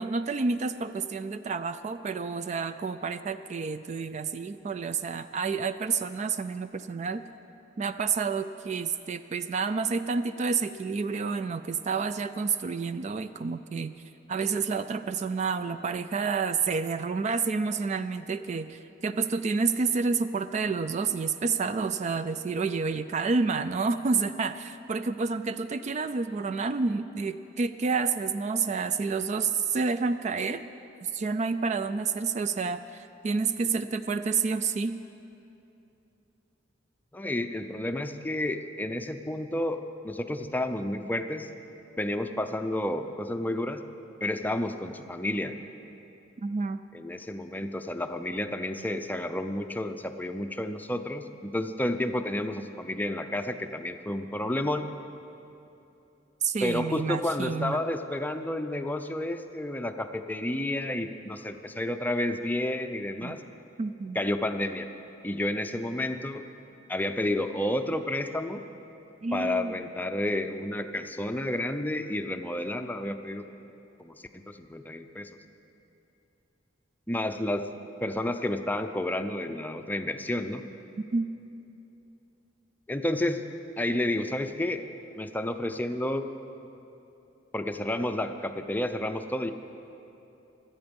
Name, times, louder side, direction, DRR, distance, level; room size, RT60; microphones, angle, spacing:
voice 1, 0.0-7.2 7.8-13.9 14.3-30.6 31.0-35.0 46.4-46.8 56.4-57.8 63.2-63.4 63.8-64.2 69.2-69.8 81.0-81.3, right 4 dB, 40° right, 11 dB, 0.3 m, -29 dB
voice 2, 37.1-41.5 42.0-43.8 44.2-45.5 46.9-54.9 56.6-63.4 64.1-64.9 65.2-66.4 66.9-68.6 69.3-73.4 74.0-74.2 74.5-75.3 77.1-77.7 78.0-80.6 82.9-83.4 83.8-84.8 85.2-86.3 87.5-89.5, left 1 dB, 10° left, 8 dB, 0.5 m, -30 dB
24.5 x 8.7 x 5.3 m, 2.9 s
head